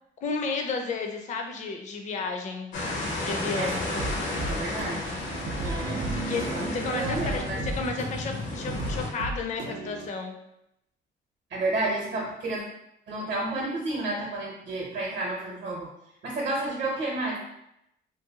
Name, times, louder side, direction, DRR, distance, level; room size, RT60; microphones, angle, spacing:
voice 1, 0.2-2.7 3.2-3.8 6.3-10.3, left 4 dB, 40° left, 4 dB, 0.4 m, -32 dB
sound 1, 2.7-9.1, left 2 dB, 80° left, 0.7 m, -32 dB
sound 2, 4.0-10.1, right 3 dB, 85° right, 0.5 m, -35 dB
voice 2, 4.5-5.2 5.6-7.6 11.5-12.6 13.1-15.9 16.2-17.4, right 2 dB, 60° right, -3 dB, 0.8 m, -31 dB
2.6 x 2.2 x 2.7 m, 0.82 s
cardioid pair, 90°, 20 cm